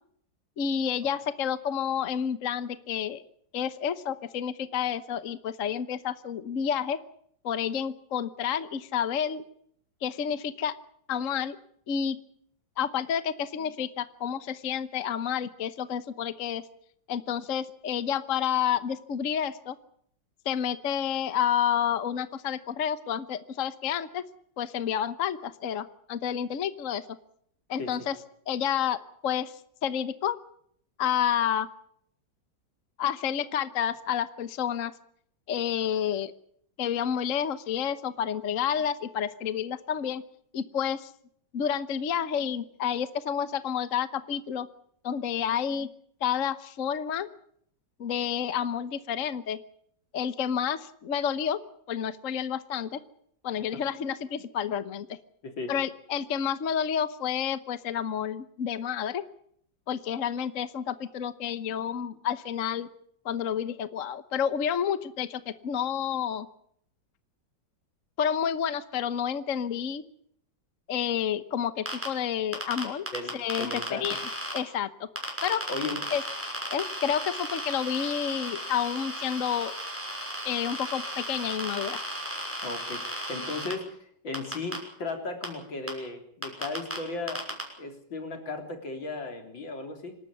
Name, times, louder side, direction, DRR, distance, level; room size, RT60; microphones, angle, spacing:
voice 1, 0.6-3.2 3.5-7.0 7.4-9.4 10.0-10.7 11.1-11.6 11.9-12.2 12.8-16.6 17.1-19.8 20.4-24.2 24.6-27.0 27.7-28.2 28.5-29.0 29.2-29.5 29.8-30.4 31.0-31.7 33.0-34.9 35.5-36.3 36.8-40.2 40.5-41.1 41.5-44.7 45.0-45.9 46.2-47.3 48.0-49.6 50.1-51.6 51.9-53.0 53.4-55.2 55.7-59.2 59.9-62.9 63.2-66.5 68.2-70.0 70.9-73.1 73.3-74.2 74.5-75.1 75.4-75.6 76.1-76.2 76.7-79.7 80.4-82.0, left 8 dB, 50° left, 13 dB, 1.2 m, -29 dB
voice 2, 55.4-55.7 73.1-74.2 75.7-76.0 82.6-90.2, left 3 dB, 85° left, 5 dB, 4.3 m, -36 dB
sound 1, 71.9-72.1 72.5-74.6 75.2-83.7 84.3-84.8 85.4-85.5 85.9-86.0 86.4-87.0 87.3-87.6, equal, 5° right, 6.2 m, -35 dB
26.5 x 12.5 x 9.7 m, 0.66 s
omnidirectional pair, 2.0 m